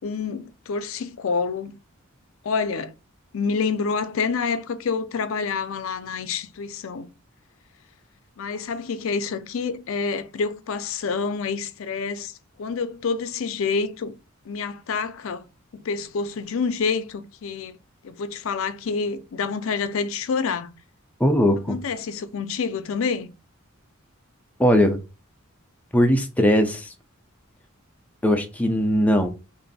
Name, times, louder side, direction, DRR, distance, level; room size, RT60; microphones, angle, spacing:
voice 1, 0.0-1.7 2.4-2.9 3.3-7.1 8.4-14.1 14.5-15.4 15.7-17.8 18.0-20.7 21.7-23.3, left 5 dB, 70° left, 0.4 m, -27 dB
voice 2, 21.2-21.8 24.6-25.0 25.9-26.9 28.2-29.3, equal, 5° left, 0.4 m, -19 dB
3.1 x 2.5 x 4.0 m
head